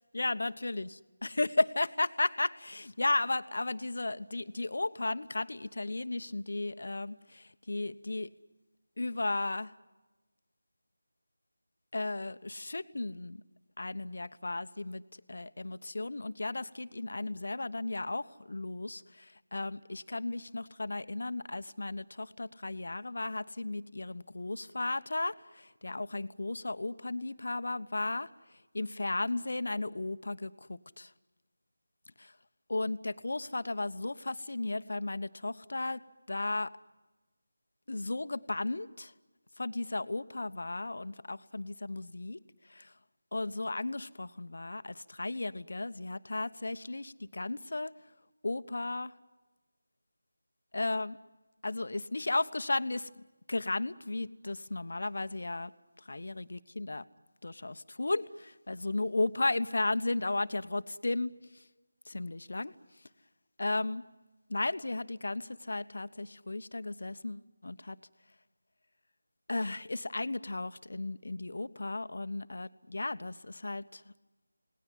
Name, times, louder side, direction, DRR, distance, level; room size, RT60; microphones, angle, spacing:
voice 1, 0.1-1.0 1.2-8.3 9.0-9.7 11.9-13.4 13.8-15.0 15.3-28.3 28.7-31.1 32.2-32.3 32.7-36.0 36.3-36.7 37.9-39.1 39.6-42.4 42.7-42.9 43.3-47.9 48.4-49.1 50.7-51.2 51.6-53.1 53.5-55.7 56.1-57.0 57.4-61.6 62.1-62.7 63.6-64.0 64.5-68.0 69.5-74.1, left 2 dB, 60° left, 12 dB, 1.1 m, -34 dB
28.0 x 19.5 x 9.4 m, 1.2 s
figure-of-eight pair, 165°, 0 cm